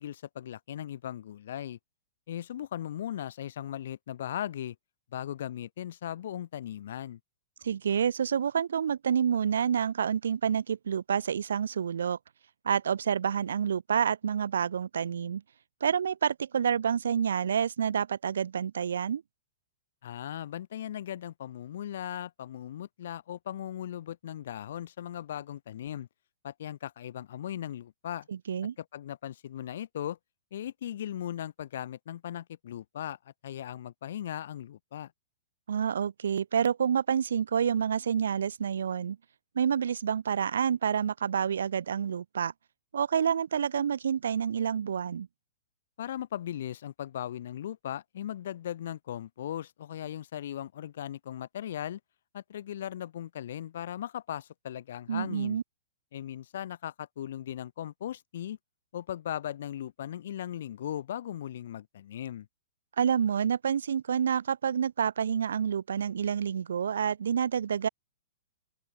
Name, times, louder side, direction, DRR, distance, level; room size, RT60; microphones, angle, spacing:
voice 1, 0.0-1.8 2.3-4.8 5.1-7.2 20.0-26.1 26.4-28.3 28.8-30.2 30.5-35.1 46.0-52.0 52.3-55.6 56.1-58.6 58.9-62.5, left 11 dB, 65° left, 0.9 m, -38 dB
voice 2, 7.6-12.2 12.6-15.4 15.8-19.2 28.3-28.7 35.7-39.2 39.5-42.5 42.9-45.3 55.1-55.6 63.0-67.9, right 7 dB, 90° right, 1.0 m, -28 dB
open air
hypercardioid pair, 150°, 0 cm